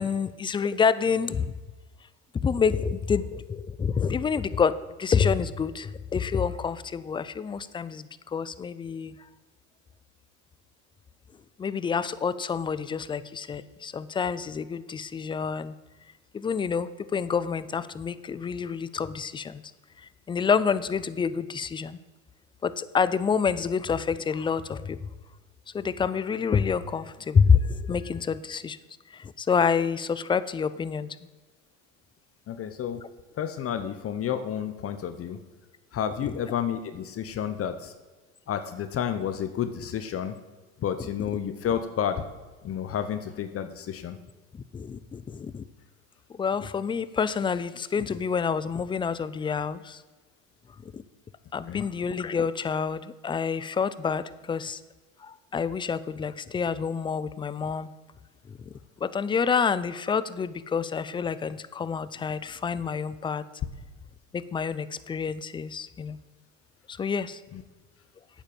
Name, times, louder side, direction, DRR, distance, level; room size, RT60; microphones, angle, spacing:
voice 1, 0.0-1.5 2.4-9.2 11.6-15.7 16.3-19.6 20.0-22.0 22.6-25.1 25.7-28.8 29.1-31.2 44.5-45.6 46.3-50.0 50.8-51.0 51.5-54.8 55.2-57.9 58.5-58.7 59.0-63.5 64.3-66.2 66.9-67.4, left 6 dB, 15° left, 16 dB, 0.3 m, -28 dB
voice 2, 32.5-33.0 33.4-35.4 35.9-37.9 38.5-40.4 40.8-42.2 42.6-44.2 51.7-51.9 67.5-67.6, left 9 dB, 35° left, 10 dB, 0.9 m, -30 dB
8.8 x 7.4 x 7.0 m, 1.3 s
hypercardioid pair, 90°, 39 cm